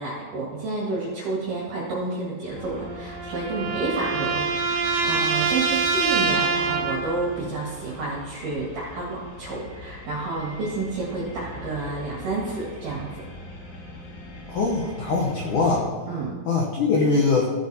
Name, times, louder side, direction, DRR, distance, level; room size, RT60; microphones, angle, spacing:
voice 1, 0.0-13.2 16.1-16.3, right 3 dB, 55° right, -6 dB, 3.0 m, -30 dB
sound 1, 2.5-15.8, left 2 dB, 50° left, 3.0 m, -42 dB
sound 2, 2.6-7.3, right 5 dB, 75° right, 2.3 m, -25 dB
voice 2, 14.5-15.9 16.5-17.5, left 4 dB, 85° left, -1 dB, 1.7 m, -22 dB
15.5 x 7.7 x 2.8 m, 1.5 s
omnidirectional pair, 5.1 m